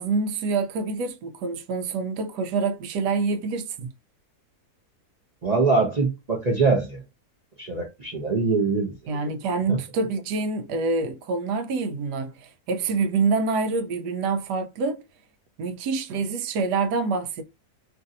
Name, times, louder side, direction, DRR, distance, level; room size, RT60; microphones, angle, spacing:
voice 1, 0.0-3.9 9.1-15.0 15.6-17.4, right 4 dB, 85° right, 1.2 m, -26 dB
voice 2, 5.4-7.0 7.6-8.9 9.7-9.8, right 4 dB, 50° right, 0.4 m, -23 dB
3.0 x 2.6 x 2.5 m
omnidirectional pair, 1.7 m